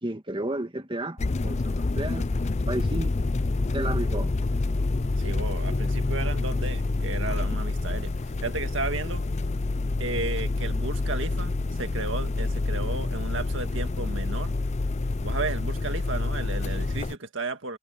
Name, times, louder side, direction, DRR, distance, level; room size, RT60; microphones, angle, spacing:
voice 1, 0.0-2.3 2.7-3.1 3.7-4.3, right 1 dB, 25° right, 1.8 m, -32 dB
sound 1, 1.2-17.2, left 2 dB, 35° left, 0.5 m, -27 dB
voice 2, 5.2-9.2 10.0-14.5 15.2-17.8, right 3 dB, 65° right, 2.0 m, -34 dB
head